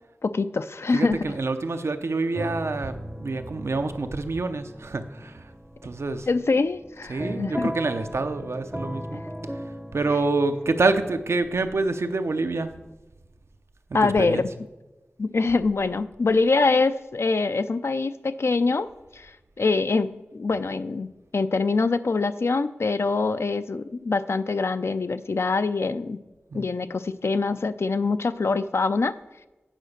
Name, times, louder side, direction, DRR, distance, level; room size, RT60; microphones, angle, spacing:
voice 1, 0.2-1.3 6.3-7.7 9.1-9.2 13.9-14.5 15.2-18.9 19.1-19.3 19.6-21.1 21.3-26.2 26.5-29.2, left 3 dB, 75° left, 12 dB, 0.4 m, -24 dB
voice 2, 0.9-5.5 5.8-6.3 7.1-9.2 9.9-12.7 14.0-14.5 26.5-26.7, right 3 dB, 85° right, 9 dB, 0.6 m, -27 dB
sound 1, 2.3-12.9, equal, 5° right, 0.6 m, -39 dB
9.0 x 4.9 x 6.5 m, 1.1 s
wide cardioid pair, 50°, 4 cm